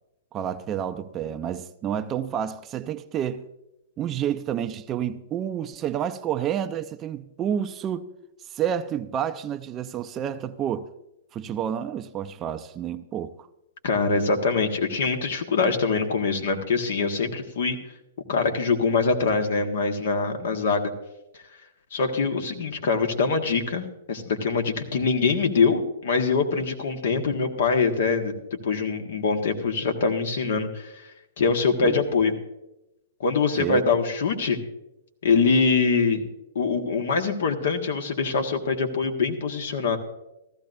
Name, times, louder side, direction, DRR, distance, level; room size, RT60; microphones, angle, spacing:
voice 1, 0.3-3.5 4.0-8.1 8.5-10.9 11.3-13.5 31.8-32.0 33.6-33.8, right 9 dB, 25° right, 0.5 m, -29 dB
voice 2, 13.8-17.8 18.3-20.9 21.9-28.3 28.6-31.1 31.4-32.3 33.2-34.6 35.2-36.2 36.5-40.0, left 4 dB, 65° left, 1.5 m, -24 dB
15.5 x 13.5 x 2.6 m
hypercardioid pair, 125°, 0 cm